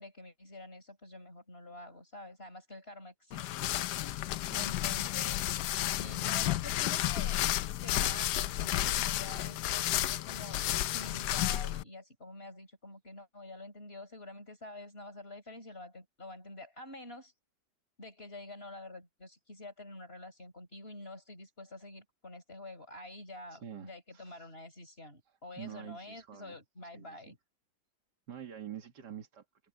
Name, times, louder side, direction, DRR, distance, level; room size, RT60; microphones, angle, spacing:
voice 1, 0.0-3.7 4.5-5.4 5.9-7.4 7.8-17.3 18.0-27.4, left 1 dB, 30° left, 6.2 m, -48 dB
sound 1, 3.3-11.8, left 14 dB, 75° left, 1.1 m, -32 dB
voice 2, 4.4-4.9 23.5-24.5 25.6-26.6 26.9-27.4 28.3-29.4, right 9 dB, 70° right, 2.5 m, -47 dB
omnidirectional pair, 1.9 m